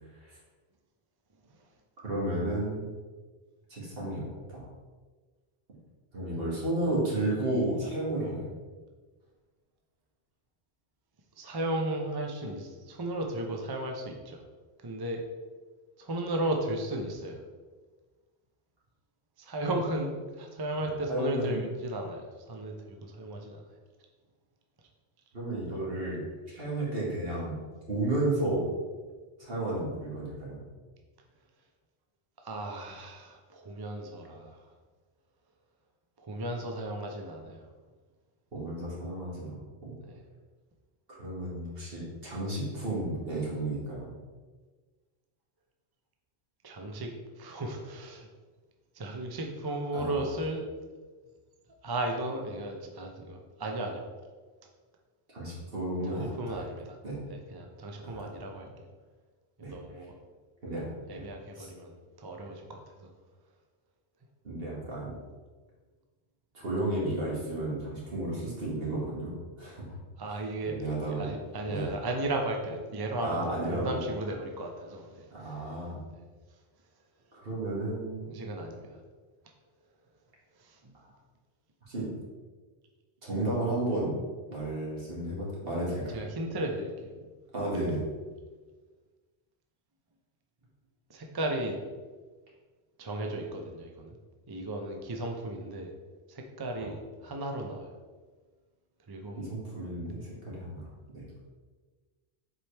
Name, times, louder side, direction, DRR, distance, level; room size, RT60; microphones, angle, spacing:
voice 1, 2.0-2.8 3.7-4.6 6.1-8.6 21.1-21.6 25.3-26.2 26.5-27.5 27.9-28.7 29.4-30.6 38.5-39.6 39.8-39.9 41.2-44.1 49.9-50.2 55.3-56.7 57.0-57.2 58.0-58.3 59.6-59.7 60.6-60.9 61.1-61.2 61.6-61.7 64.4-65.2 66.5-69.8 70.6-71.3 71.7-71.9 73.2-74.0 75.3-76.0 77.3-78.3 81.9-82.1 83.2-84.1 84.5-86.2 87.5-88.0 96.8-96.9 99.4-101.3, right 1 dB, 60° right, -5 dB, 2.1 m, -32 dB
voice 2, 11.4-14.4 14.8-15.2 16.0-17.4 19.4-23.6 32.4-34.6 36.2-37.7 40.1-40.2 46.6-47.1 47.4-48.3 48.9-50.7 51.8-54.0 56.1-57.0 57.3-58.7 59.6-60.1 61.1-63.1 70.2-70.8 71.1-75.8 76.1-76.2 78.3-79.0 80.6-80.9 86.1-87.1 91.1-91.8 93.0-94.1 94.5-95.9 96.3-97.9 99.1-99.4, right 1 dB, 25° right, 2 dB, 0.6 m, -35 dB
7.4 x 4.5 x 3.4 m, 1.4 s
omnidirectional pair, 1.1 m